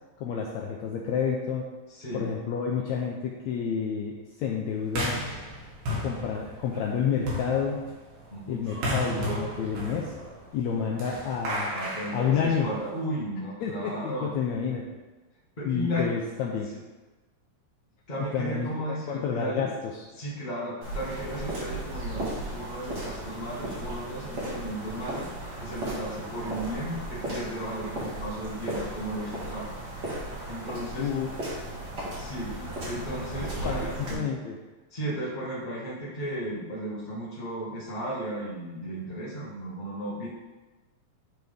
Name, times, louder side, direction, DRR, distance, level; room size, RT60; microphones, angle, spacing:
voice 1, 0.2-1.7 2.1-5.2 6.0-7.8 8.5-10.1 10.5-11.7 12.1-12.7 13.6-14.8 15.6-16.7 18.3-20.0 31.0-31.3 33.4-34.6, left 7 dB, 85° left, -1 dB, 1.6 m, -29 dB
voice 2, 1.9-2.2 8.3-8.6 10.8-10.9 11.7-14.3 15.6-16.1 18.1-19.7 20.2-25.3 25.6-29.7 30.5-31.1 32.1-32.5 32.8-34.2 34.9-40.3, right 1 dB, 55° left, -7 dB, 0.4 m, -35 dB
sound 1, 4.9-13.0, equal, 70° right, 3.3 m, -34 dB
sound 2, 20.8-34.1, right 1 dB, 40° right, 1.8 m, -36 dB
9.6 x 4.0 x 3.5 m, 1.2 s
omnidirectional pair, 3.8 m